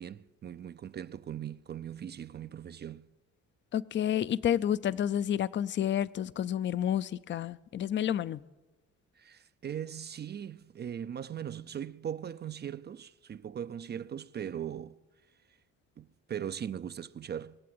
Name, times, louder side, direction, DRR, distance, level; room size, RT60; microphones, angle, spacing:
voice 1, 0.0-3.1 9.2-15.0 16.0-17.6, right 9 dB, 35° right, 0.4 m, -39 dB
voice 2, 3.7-8.4, left 10 dB, 40° left, 0.4 m, -30 dB
21.5 x 7.6 x 7.8 m
cardioid pair, 90°, 30 cm